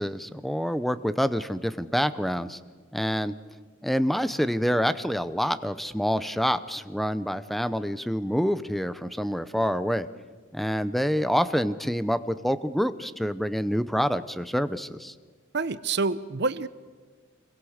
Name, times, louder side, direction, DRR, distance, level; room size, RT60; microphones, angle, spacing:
voice 1, 0.0-2.6 2.9-3.3 3.8-10.1 10.5-15.1, equal, ahead, 13 dB, 0.7 m, -27 dB
voice 2, 15.5-16.7, right 4 dB, 60° right, 15 dB, 0.8 m, -27 dB
27.0 x 22.0 x 6.5 m, 1.5 s
head